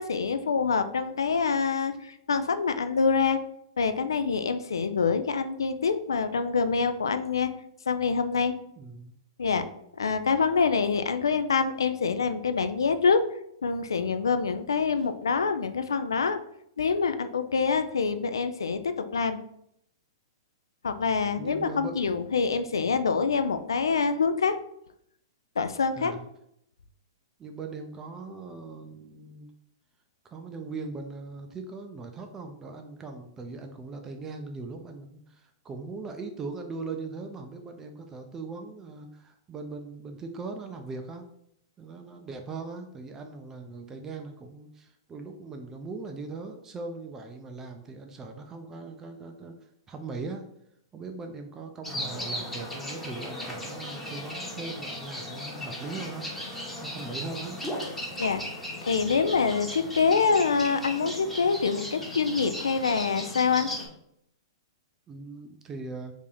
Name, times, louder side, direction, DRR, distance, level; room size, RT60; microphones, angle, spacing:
voice 1, 0.0-3.4 3.8-7.5 7.9-8.5 9.4-9.7 10.0-13.2 13.6-16.4 16.8-19.4 20.8-24.6 25.6-26.1 58.2-58.4 58.8-63.7, left 5 dB, 85° left, 10 dB, 0.3 m, -26 dB
voice 2, 8.8-9.1 21.4-21.9 25.9-26.2 27.4-29.5 30.2-41.3 41.8-50.5 50.9-56.3 56.8-57.6 65.1-66.1, right 3 dB, 20° right, 4 dB, 0.4 m, -40 dB
sound 1, 51.8-63.9, equal, 5° left, 0.9 m, -37 dB
2.8 x 2.6 x 3.9 m, 0.75 s
hypercardioid pair, 115°, 2 cm